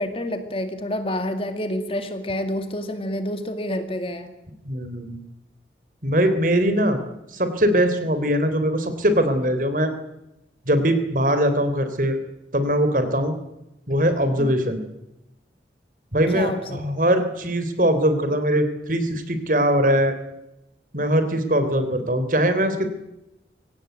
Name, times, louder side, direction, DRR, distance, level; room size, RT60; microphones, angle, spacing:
voice 1, 0.0-4.3 14.4-14.5 16.3-16.8, left 1 dB, 30° left, 8 dB, 2.3 m, -28 dB
voice 2, 4.7-5.2 6.0-7.0 7.3-9.9 10.7-12.2 12.5-13.4 13.9-14.8 16.1-20.2 20.9-22.9, equal, 50° right, 10 dB, 3.5 m, -21 dB
24.5 x 17.5 x 9.3 m, 0.90 s
head